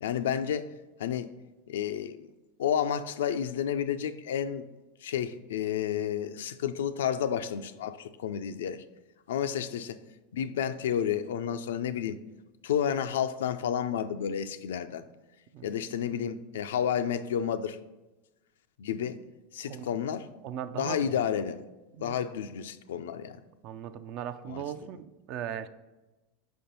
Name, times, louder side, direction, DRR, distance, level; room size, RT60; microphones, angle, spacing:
voice 1, 0.0-0.7 1.0-1.3 1.7-2.3 2.6-4.6 5.0-8.8 9.3-10.0 10.3-12.2 12.6-15.1 15.6-17.8 18.8-19.2 19.5-20.3 20.8-21.7 22.0-23.4 24.5-24.6, left 9 dB, 80° left, 11 dB, 0.3 m, -31 dB
voice 2, 20.4-21.1 22.0-22.2 23.6-25.7, right 9 dB, 55° right, 12 dB, 0.4 m, -38 dB
4.6 x 4.3 x 5.3 m, 1.1 s
hypercardioid pair, 100°, 0 cm